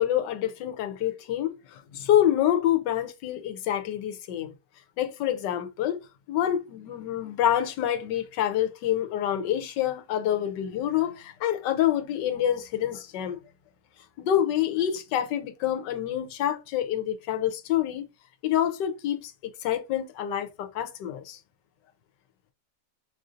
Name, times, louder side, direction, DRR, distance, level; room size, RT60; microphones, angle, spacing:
voice 1, 0.0-4.5 5.0-6.0 6.3-13.4 14.2-18.0 18.4-19.3 19.6-21.4, left 11 dB, 85° left, 1.3 m, -27 dB
5.4 x 2.5 x 2.5 m
omnidirectional pair, 1.8 m